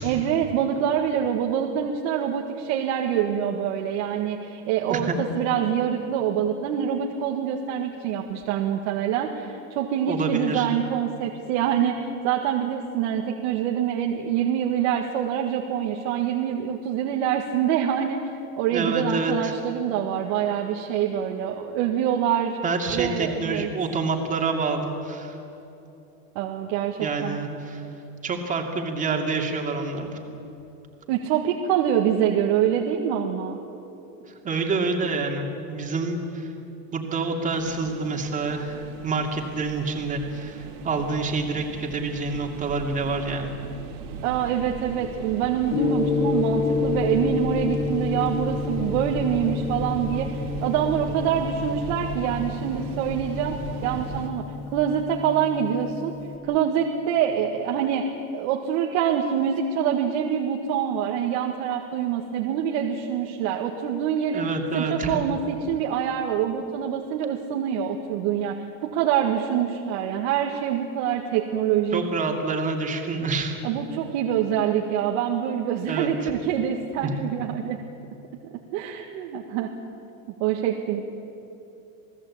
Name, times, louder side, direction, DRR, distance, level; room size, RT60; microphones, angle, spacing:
voice 1, 0.0-18.2 18.6-22.6 22.9-23.7 26.4-27.4 31.1-33.6 44.2-53.6 53.8-54.4 54.7-56.1 56.4-58.1 58.3-64.5 64.7-68.6 68.8-72.0 73.6-77.8 78.7-79.7 80.4-81.0, right 9 dB, 55° right, 1 dB, 1.9 m, -25 dB
voice 2, 10.1-10.7 18.7-19.5 22.6-25.4 27.0-27.8 28.2-30.2 34.3-36.5 36.9-43.5 64.3-65.1 71.9-73.6 75.9-76.1 77.0-77.1, right 3 dB, 15° right, 2 dB, 2.5 m, -27 dB
sound 1, 37.5-54.3, right 5 dB, 80° right, 3.3 m, -37 dB
Gong, 45.7-56.4, left 5 dB, 65° left, 3.5 m, -29 dB
28.0 x 18.5 x 8.6 m, 3.0 s
supercardioid pair, 165°, 44 cm